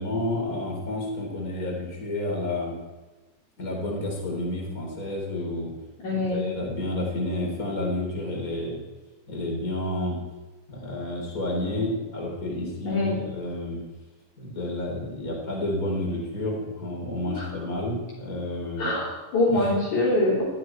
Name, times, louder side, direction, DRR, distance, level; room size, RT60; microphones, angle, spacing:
voice 1, 0.0-2.7 3.6-5.7 6.1-8.8 9.3-10.2 10.7-13.8 14.4-18.9 19.5-19.7, left 1 dB, 25° left, 0 dB, 4.3 m, -30 dB
voice 2, 6.0-6.5 12.8-13.2 17.3-17.4 18.8-20.5, left 2 dB, 65° left, -7 dB, 5.1 m, -24 dB
20.5 x 14.0 x 4.6 m, 1.2 s
omnidirectional pair, 3.7 m